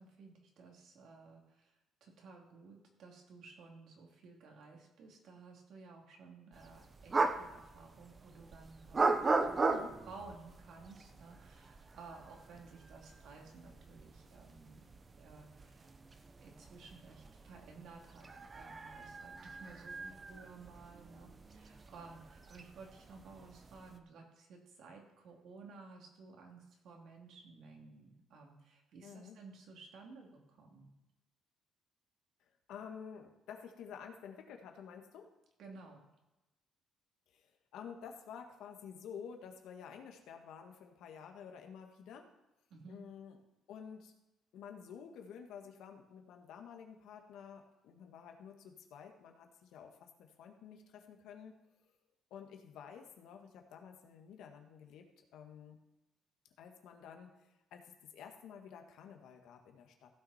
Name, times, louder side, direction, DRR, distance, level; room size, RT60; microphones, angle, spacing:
voice 1, 0.0-14.8 15.1-15.9 16.4-30.9 35.6-36.0 42.7-43.0, right 4 dB, 70° right, 0 dB, 2.9 m, -55 dB
sound 1, 6.5-24.0, right 3 dB, 30° right, 0.9 m, -39 dB
voice 2, 29.0-29.4 32.7-35.3 37.3-42.3 42.9-43.4 43.7-44.1 44.5-51.6 52.3-55.8 56.6-60.2, left 7 dB, 80° left, 4 dB, 1.6 m, -51 dB
15.5 x 6.4 x 4.4 m, 0.98 s
cardioid pair, 110°, 0 cm